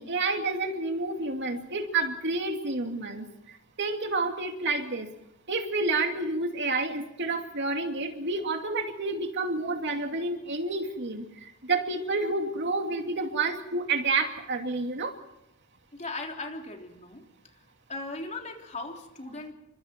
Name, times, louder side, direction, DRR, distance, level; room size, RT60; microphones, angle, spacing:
voice 1, 0.0-5.1 5.5-15.2, right 3 dB, 55° right, 4 dB, 2.6 m, -29 dB
voice 2, 15.9-17.2 17.9-19.5, left 2 dB, 35° left, 2 dB, 3.5 m, -38 dB
29.5 x 25.0 x 4.6 m, 0.85 s
head